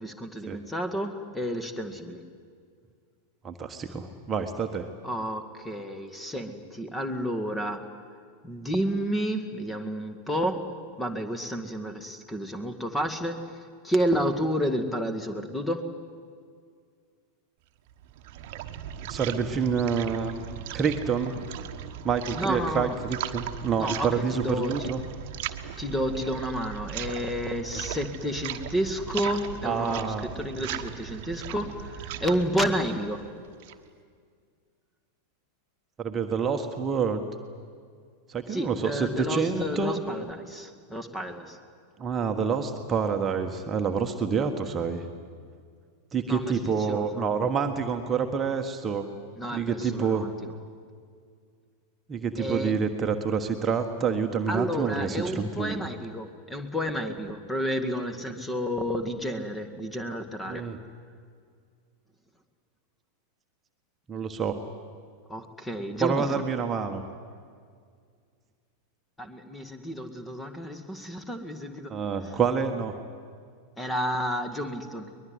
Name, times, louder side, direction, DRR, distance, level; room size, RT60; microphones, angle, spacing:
voice 1, 0.0-2.2 5.0-7.8 8.4-15.9 22.3-23.0 23.8-24.9 25.8-33.2 38.5-41.6 46.3-46.5 46.9-47.2 49.4-50.3 52.4-52.8 54.5-60.6 65.3-66.4 69.2-72.0 73.8-75.1, equal, 10° left, 9 dB, 1.9 m, -31 dB
voice 2, 3.4-4.9 19.1-20.4 20.7-21.4 22.0-25.0 29.6-30.3 36.0-37.3 38.3-40.0 42.0-45.0 46.1-49.1 49.5-50.3 52.1-55.8 60.5-60.8 64.1-64.6 66.0-67.0 71.9-72.9, right 6 dB, 20° right, 4 dB, 1.5 m, -28 dB
sound 1, 17.9-33.9, right 10 dB, 45° right, 1.2 m, -38 dB
23.0 x 20.5 x 9.5 m, 2.1 s
figure-of-eight pair, 90°, 0 cm